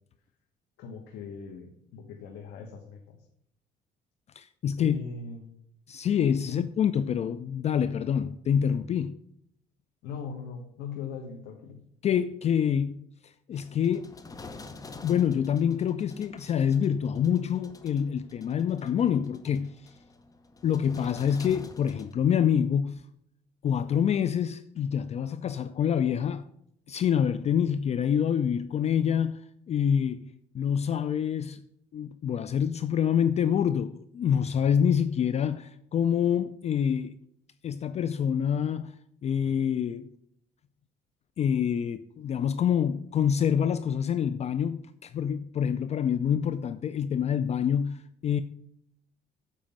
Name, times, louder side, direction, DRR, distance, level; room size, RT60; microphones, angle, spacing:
voice 1, 0.8-3.2 4.8-5.4 6.4-6.7 10.0-11.9, left 6 dB, 85° left, 1.2 m, -40 dB
voice 2, 4.4-5.0 5.9-9.2 12.0-14.1 15.0-19.9 20.6-23.0 23.6-26.4 26.9-29.4 29.7-30.2 30.5-31.6 31.9-37.1 37.6-38.9 39.2-40.1 41.4-48.4, left 8 dB, 40° left, 0.4 m, -26 dB
sound 1, 13.5-22.1, left 3 dB, 20° left, 0.8 m, -48 dB
7.5 x 5.0 x 7.3 m
cardioid pair, 110°, 17 cm